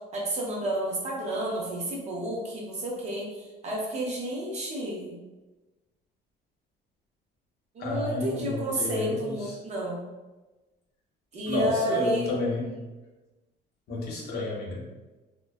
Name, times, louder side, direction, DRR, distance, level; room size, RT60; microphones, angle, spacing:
voice 1, 0.1-5.1 7.7-10.0 11.3-12.3, right 1 dB, 40° right, -3 dB, 0.6 m, -31 dB
voice 2, 7.8-9.6 11.5-12.7 13.9-14.8, left 2 dB, 65° left, -3 dB, 0.8 m, -30 dB
2.6 x 2.2 x 2.2 m, 1.1 s
cardioid pair, 140°, 18 cm